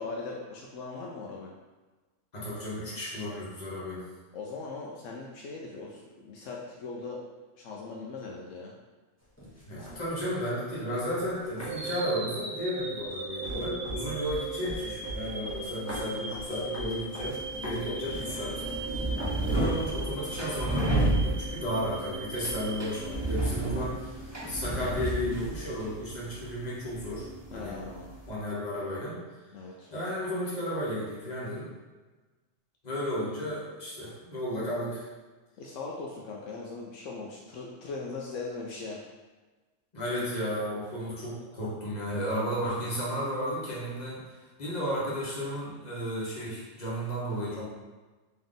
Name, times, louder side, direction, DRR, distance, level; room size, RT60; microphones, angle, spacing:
voice 1, 0.0-1.5 4.3-7.2 7.6-8.8 18.9-19.2 27.5-28.1 29.5-29.9 35.6-39.1 47.4-47.6, left 3 dB, 80° left, -2 dB, 0.9 m, -39 dB
voice 2, 2.3-4.0 9.7-19.0 19.4-27.7 28.3-29.2 29.9-31.7 32.8-35.1 39.9-47.6, equal, 35° left, -7 dB, 1.2 m, -33 dB
sound 1, 9.2-10.2 10.9-12.0 12.7-19.9 20.5-20.6 20.9-21.6 21.9-25.8, equal, 15° left, 0.9 m, -43 dB
sound 2, 11.7-23.8, right 3 dB, 85° right, 1.2 m, -39 dB
sound 3, 17.2-28.3, right 1 dB, 15° right, 0.9 m, -32 dB
3.6 x 3.1 x 3.8 m, 1.2 s
omnidirectional pair, 1.3 m